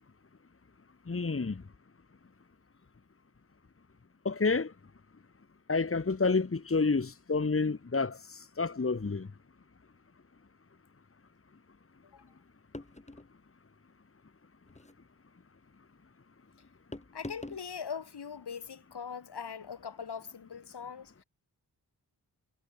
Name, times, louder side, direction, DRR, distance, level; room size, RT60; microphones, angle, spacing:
voice 1, 1.1-1.6 4.2-4.7 5.7-9.3, left 4 dB, 35° left, 2.3 m, -29 dB
sound 1, 12.7-13.3 14.7-15.0 16.9-17.7, left 2 dB, 15° left, 5.2 m, -44 dB
voice 2, 17.1-21.2, left 6 dB, 75° left, 6.3 m, -41 dB
wide cardioid pair, 90°, 40 cm